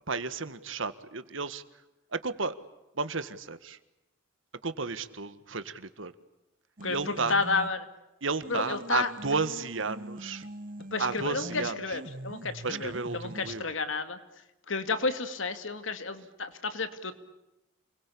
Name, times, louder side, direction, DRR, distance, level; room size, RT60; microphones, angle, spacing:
voice 1, 0.1-1.6 2.1-2.6 3.0-3.8 4.6-6.1 6.9-7.4 8.2-10.4 11.0-11.7 12.6-13.7, right 4 dB, 80° right, 12 dB, 1.7 m, -32 dB
voice 2, 6.8-7.9 8.5-9.1 10.9-14.2 14.7-17.1, left 4 dB, 80° left, 9 dB, 2.3 m, -31 dB
sound 1, 6.8-7.9 8.4-13.6, right 1 dB, 45° right, 1.0 m, -43 dB
29.0 x 22.0 x 8.6 m, 0.95 s
head